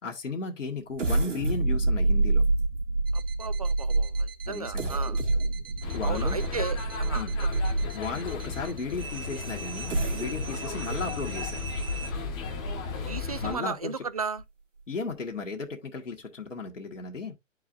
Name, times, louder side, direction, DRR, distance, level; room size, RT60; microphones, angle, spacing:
voice 1, 0.0-2.4 4.5-4.9 5.9-6.4 7.1-7.3 7.9-11.6 13.4-14.0 14.9-17.4, left 4 dB, 70° left, 1.6 m, -35 dB
sound 1, 0.9-8.1 8.7-8.8 9.7-13.2 13.7-13.8 14.2-14.4, right 2 dB, 65° right, 2.1 m, -28 dB
voice 2, 3.1-5.2 6.0-7.3 13.1-14.4, right 5 dB, 30° right, 0.4 m, -35 dB
sound 2, 3.1-12.1, right 6 dB, 45° right, 0.8 m, -43 dB
sound 3, 5.8-13.5, left 6 dB, 20° left, 1.1 m, -35 dB
10.5 x 4.7 x 2.5 m
figure-of-eight pair, 140°, 39 cm